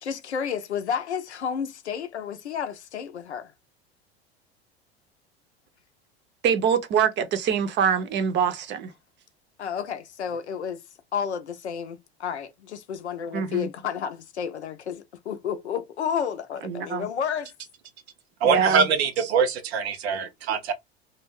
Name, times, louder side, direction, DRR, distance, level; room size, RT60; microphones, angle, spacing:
voice 1, 0.0-3.5 9.6-10.8 11.1-17.5, left 7 dB, 90° left, 0.6 m, -31 dB
voice 2, 6.4-8.9 13.3-13.7 16.6-17.1 18.4-18.9, right 7 dB, 35° right, 0.6 m, -24 dB
voice 3, 18.4-20.7, right 6 dB, 70° right, 0.7 m, -23 dB
2.3 x 2.1 x 3.2 m
hypercardioid pair, 85°, 33 cm